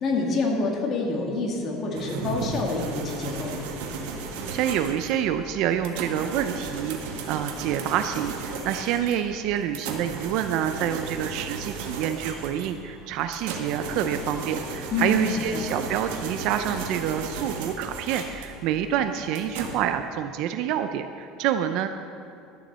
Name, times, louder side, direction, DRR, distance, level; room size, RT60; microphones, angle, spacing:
voice 1, 0.0-3.7 14.9-15.6, left 3 dB, 35° left, 0 dB, 2.1 m, -27 dB
sound 1, 1.9-19.8, right 4 dB, 90° right, 1.5 m, -35 dB
voice 2, 4.5-7.0 7.3-21.9, right 9 dB, 60° right, 8 dB, 0.5 m, -27 dB
12.0 x 7.1 x 6.7 m, 2.6 s
cardioid pair, 145°, 0 cm